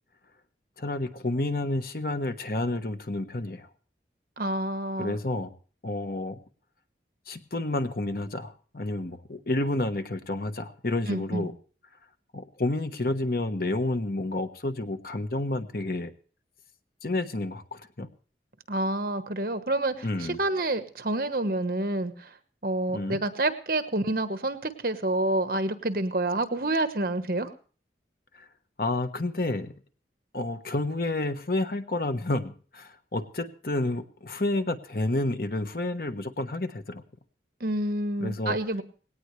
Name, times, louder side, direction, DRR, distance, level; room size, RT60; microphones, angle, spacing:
voice 1, 0.8-3.7 5.0-5.5 5.8-6.4 7.3-11.5 12.3-16.1 17.0-18.1 20.0-20.4 22.9-23.2 28.3-28.5 28.8-29.7 30.3-37.0 38.2-38.6, left 2 dB, 55° left, 9 dB, 1.2 m, -30 dB
voice 2, 4.4-5.2 11.1-11.5 18.7-22.3 22.6-27.5 37.6-38.8, right 2 dB, 55° right, 10 dB, 1.3 m, -28 dB
19.0 x 18.0 x 3.3 m, 0.40 s
head